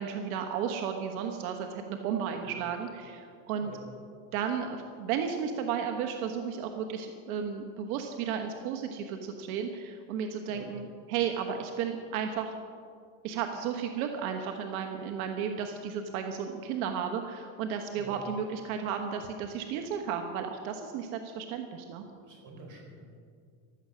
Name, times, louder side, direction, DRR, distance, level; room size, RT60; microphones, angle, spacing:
voice 1, 0.0-3.7 4.3-12.6 13.2-22.0, right 7 dB, 90° right, 5 dB, 1.4 m, -33 dB
voice 2, 22.2-23.2, right 4 dB, 45° right, 2 dB, 4.3 m, -47 dB
15.5 x 12.5 x 6.3 m, 2.2 s
cardioid pair, 145°, 42 cm